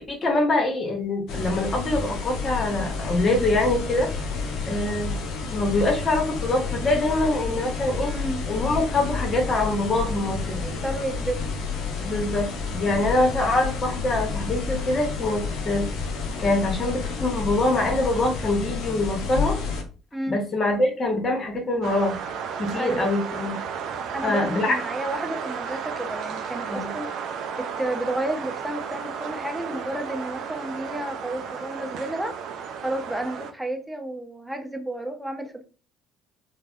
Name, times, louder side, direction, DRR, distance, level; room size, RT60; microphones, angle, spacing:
voice 1, 0.1-4.1 4.7-5.2 5.5-8.1 8.5-10.6 12.0-15.9 16.4-19.6 20.3-22.2 22.6-23.6 24.2-24.7 26.6-26.9, left 2 dB, 35° left, 1 dB, 1.1 m, -24 dB
sound 1, 1.3-19.8, left 4 dB, 55° left, 0.7 m, -30 dB
voice 2, 8.0-8.5 10.6-11.5 20.1-20.4 22.7-23.1 24.1-27.1 27.5-35.6, right 1 dB, 5° right, 4 dB, 0.7 m, -31 dB
sound 2, 21.8-33.5, right 7 dB, 55° right, 0.4 m, -33 dB
3.3 x 2.2 x 2.5 m, 0.36 s
figure-of-eight pair, 50°, 0 cm